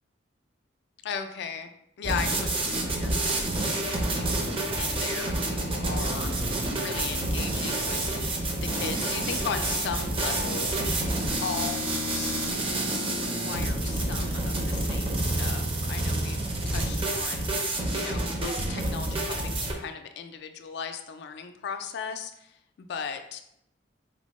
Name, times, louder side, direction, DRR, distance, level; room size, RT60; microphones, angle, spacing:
voice 1, 1.0-1.7 2.0-6.3 6.8-10.7 11.4-16.4 16.7-23.4, left 6 dB, 60° left, 8 dB, 0.3 m, -37 dB
Ina Dashcraft Stylee, 2.0-19.7, right 2 dB, 30° right, 0.5 m, -29 dB
sound 1, 2.7-17.0, right 1 dB, 80° right, 0.7 m, -41 dB
4.2 x 2.0 x 3.0 m, 0.76 s
head